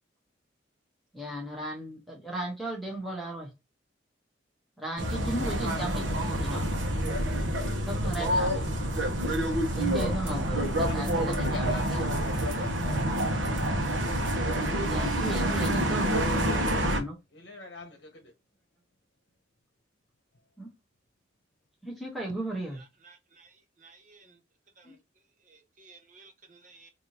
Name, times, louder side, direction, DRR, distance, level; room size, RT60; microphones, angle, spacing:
voice 1, 1.1-3.5 4.8-6.1 6.3-6.7 7.9-8.6 9.7-12.1 14.9-17.2 20.6-20.7 21.8-22.8 24.8-24.9, right 1 dB, ahead, 1.0 m, -35 dB
sound 1, 5.0-17.0, right 1 dB, 85° right, 0.9 m, -28 dB
voice 2, 10.8-12.6 15.8-17.0 17.3-18.3, left 2 dB, 60° left, 0.9 m, -44 dB
voice 3, 22.8-24.4 24.8-25.0 25.5-26.9, right 4 dB, 40° right, 0.8 m, -56 dB
3.5 x 2.6 x 2.8 m
head